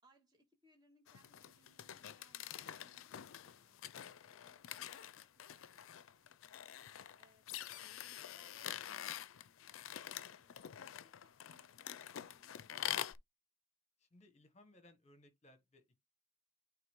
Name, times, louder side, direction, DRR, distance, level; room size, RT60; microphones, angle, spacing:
voice 1, 0.0-5.1 5.5-6.3 7.2-12.9, right 1 dB, 20° right, 1.8 m, -72 dB
sound 1, 1.1-13.1, left 11 dB, 75° left, 0.4 m, -46 dB
voice 2, 14.0-16.0, left 1 dB, 30° left, 1.3 m, -64 dB
9.0 x 3.1 x 3.6 m
head